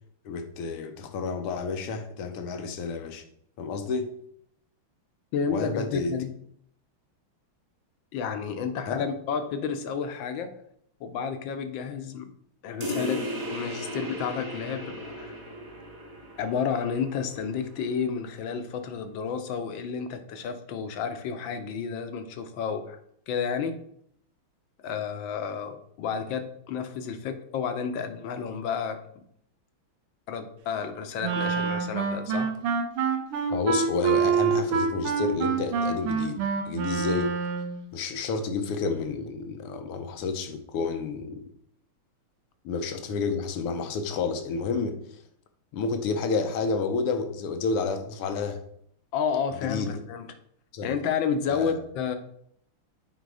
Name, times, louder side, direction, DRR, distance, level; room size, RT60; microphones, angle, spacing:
voice 1, 0.3-3.3 3.6-4.1 5.5-6.1 8.9-9.0 33.5-37.3 37.9-41.5 42.6-45.2 45.7-48.6 49.6-49.9 50.7-50.9 51.5-51.8, left 4 dB, 85° left, 1.9 m, -30 dB
voice 2, 5.3-6.3 8.1-10.5 11.0-12.3 12.6-13.3 13.5-15.4 16.4-23.0 23.3-23.7 24.8-29.0 30.3-32.5 49.1-50.3 50.8-52.2, left 6 dB, 65° left, 1.5 m, -31 dB
sound 1, 12.8-17.9, equal, 35° right, 1.8 m, -36 dB
Wind instrument woodwind instrument, 31.2-37.8, right 6 dB, 80° right, 1.8 m, -26 dB
8.0 x 4.6 x 4.8 m
omnidirectional pair, 2.4 m